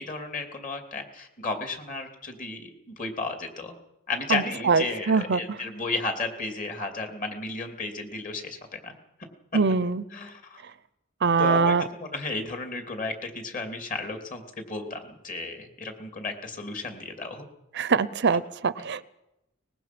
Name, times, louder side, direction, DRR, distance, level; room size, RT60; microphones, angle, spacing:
voice 1, 0.0-3.7 4.1-8.9 10.1-10.6 11.4-11.7 12.0-17.5, left 3 dB, 40° left, 5 dB, 2.8 m, -33 dB
voice 2, 4.3-5.4 9.5-10.0 11.2-11.9 17.7-19.1, right 4 dB, 55° right, 17 dB, 0.7 m, -23 dB
23.5 x 20.5 x 6.1 m, 0.93 s
head